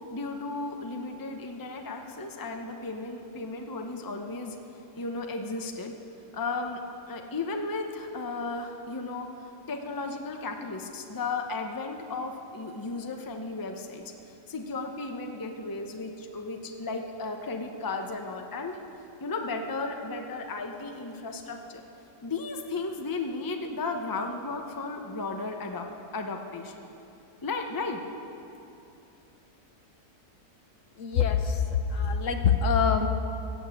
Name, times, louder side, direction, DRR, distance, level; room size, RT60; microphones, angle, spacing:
voice 1, 0.1-4.6 5.0-5.9 6.3-6.8 7.1-14.1 14.5-18.8 19.2-21.8 22.2-25.9 26.1-26.9 27.4-28.0, left 3 dB, 20° left, 4 dB, 0.7 m, -34 dB
voice 2, 31.0-33.1, left 6 dB, 60° left, 7 dB, 1.1 m, -24 dB
15.5 x 8.2 x 7.8 m, 2.8 s
omnidirectional pair, 1.6 m